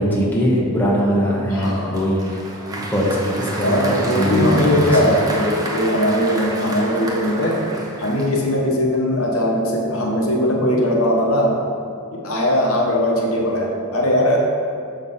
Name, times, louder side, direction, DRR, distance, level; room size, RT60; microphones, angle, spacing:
voice 1, 0.0-2.2 2.7-4.9, equal, 10° left, -5 dB, 1.1 m, -21 dB
voice 2, 1.5-2.0 3.6-7.6 8.0-11.6 12.1-14.4, equal, 75° left, -1 dB, 1.1 m, -19 dB
Applause, 1.6-8.7, right 1 dB, 15° right, 0.7 m, -30 dB
6.7 x 5.7 x 4.2 m, 2.4 s
head